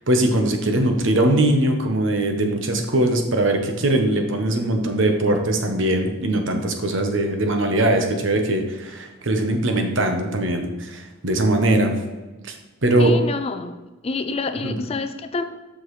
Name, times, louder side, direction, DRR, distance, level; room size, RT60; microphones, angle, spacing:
voice 1, 0.1-12.0 12.4-12.6 12.8-13.2 14.6-14.7, right 1 dB, 65° right, 4 dB, 1.0 m, -21 dB
voice 2, 13.0-13.8 14.0-15.4, left 3 dB, 30° left, 9 dB, 0.3 m, -27 dB
7.7 x 6.2 x 3.2 m, 1.2 s
head